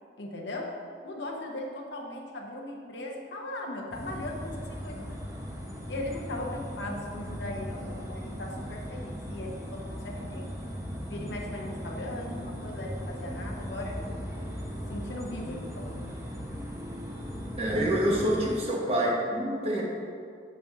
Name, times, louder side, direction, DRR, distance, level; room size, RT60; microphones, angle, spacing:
voice 1, 0.2-5.3 5.9-10.6 11.1-14.0 14.9-16.0, left 1 dB, 70° left, 0 dB, 0.8 m, -38 dB
sound 1, 3.9-18.6, equal, 15° right, 0.7 m, -38 dB
voice 2, 17.6-19.8, equal, 35° right, -2 dB, 0.9 m, -27 dB
8.0 x 6.1 x 2.4 m, 2.3 s
head